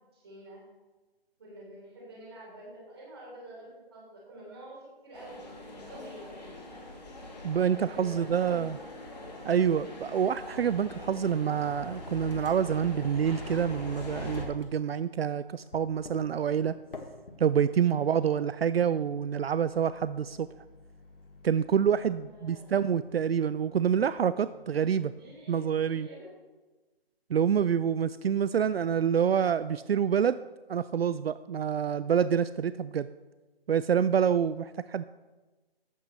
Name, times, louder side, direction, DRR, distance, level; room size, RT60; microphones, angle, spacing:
voice 1, 0.1-0.6 1.4-4.8 5.0-5.4 5.9-6.5 7.7-8.9 17.9-18.2 22.2-22.8 25.2-26.3, right 1 dB, 25° right, -4 dB, 3.6 m, -48 dB
sound 1, 5.1-14.4, left 1 dB, 40° left, 2.8 m, -42 dB
voice 2, 7.4-8.8 9.4-16.7 17.4-20.5 21.4-25.1 25.5-26.1 27.3-30.4 30.7-33.1 33.7-35.0, right 8 dB, 75° right, 15 dB, 0.4 m, -27 dB
Microwave oven, 10.9-11.4 11.6-13.9 14.3-25.3, left 3 dB, 60° left, 1.7 m, -53 dB
14.5 x 11.0 x 3.2 m, 1.2 s
hypercardioid pair, 175°, 31 cm